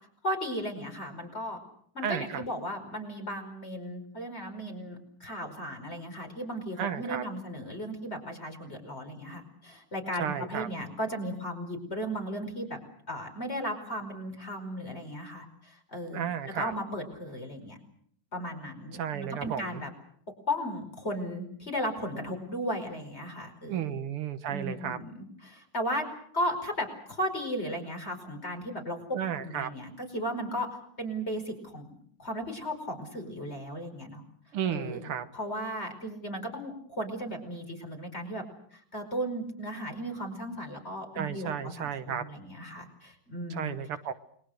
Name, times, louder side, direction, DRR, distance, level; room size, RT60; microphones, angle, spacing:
voice 1, 0.2-1.6 1.9-12.8 13.1-16.2 16.5-17.8 18.3-19.9 20.5-23.9 24.5-26.1 26.3-30.7 31.0-34.2 34.7-35.0 35.3-38.4 38.7-43.8, equal, 30° left, 4 dB, 5.3 m, -35 dB
voice 2, 2.0-2.4 6.8-7.2 10.2-10.7 16.1-16.7 18.9-19.8 23.7-25.0 29.1-29.7 34.5-35.3 41.2-42.2 43.5-44.1, right 9 dB, 80° right, 10 dB, 2.2 m, -33 dB
29.5 x 22.0 x 6.5 m, 0.62 s
omnidirectional pair, 2.4 m